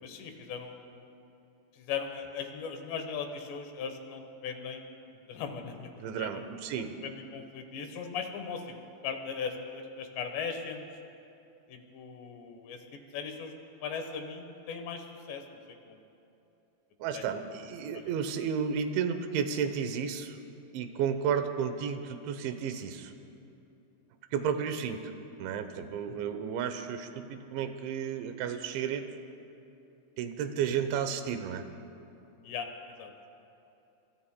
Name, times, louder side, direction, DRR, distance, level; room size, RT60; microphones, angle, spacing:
voice 1, 0.0-1.0 1.7-4.8 5.3-6.4 6.8-8.8 9.0-10.9 11.7-12.8 13.1-13.5 13.8-16.0 17.1-17.2 17.9-18.1 26.1-26.2 32.4-33.1, left 6 dB, 75° left, 5 dB, 3.2 m, -39 dB
voice 2, 6.0-6.9 17.0-20.4 20.7-23.1 24.3-25.0 25.4-29.0 30.2-31.6, right 7 dB, 85° right, 8 dB, 3.2 m, -32 dB
26.5 x 24.5 x 2.2 m, 2.9 s
omnidirectional pair, 5.2 m